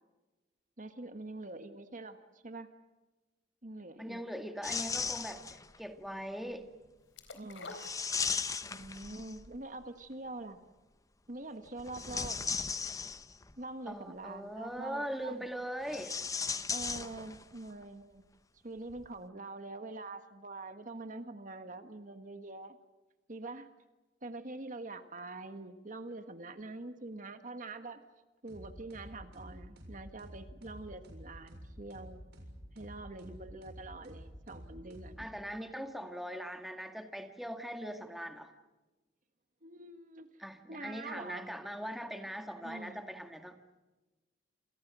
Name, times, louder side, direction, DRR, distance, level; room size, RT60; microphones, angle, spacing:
voice 1, 0.8-2.7 3.6-4.2 7.3-7.8 8.6-10.6 11.3-12.6 13.6-15.5 16.7-18.2 18.6-22.8 23.3-23.7 24.2-28.0 28.4-32.2 32.7-35.3 39.6-40.3 40.7-41.5 42.6-43.1, right 2 dB, 45° right, 8 dB, 1.6 m, -45 dB
voice 2, 4.0-6.7 13.9-16.2 35.2-38.5 40.4-43.6, equal, ahead, 5 dB, 2.0 m, -41 dB
sound 1, 4.6-5.8 7.7-9.6 11.8-13.5 15.8-17.6 17.8-17.9 18.9-19.1, left 5 dB, 20° left, 0.9 m, -36 dB
sound 2, 7.2-8.7 9.1-9.2, left 3 dB, 80° left, 4.2 m, -47 dB
sound 3, 28.5-35.6, equal, 60° right, 6.8 m, -51 dB
28.5 x 28.0 x 6.3 m, 1.1 s
head